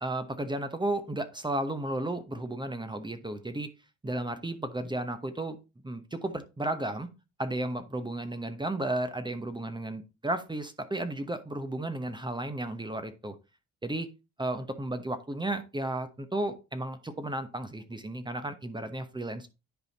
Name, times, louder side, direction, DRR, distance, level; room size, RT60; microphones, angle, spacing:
voice 1, 0.0-3.7 4.0-5.6 5.8-7.1 7.4-13.3 13.8-14.1 14.4-19.5, right 1 dB, 15° right, 9 dB, 1.0 m, -33 dB
10.5 x 4.2 x 4.1 m, 0.27 s
cardioid pair, 90°, 30 cm